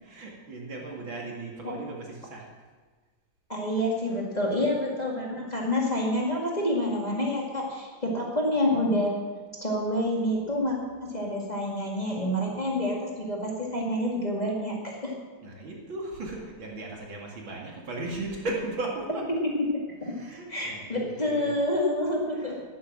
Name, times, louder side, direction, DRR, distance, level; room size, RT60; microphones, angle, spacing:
voice 1, 0.0-2.5 8.0-8.1 15.4-19.3 20.0-21.5 22.3-22.6, right 2 dB, 70° right, -1 dB, 3.1 m, -37 dB
voice 2, 3.5-9.2 9.6-10.8 11.0-15.1 19.3-20.2 20.5-22.6, left 1 dB, 20° left, -2 dB, 2.2 m, -28 dB
11.0 x 11.0 x 7.5 m, 1.4 s
omnidirectional pair, 2.3 m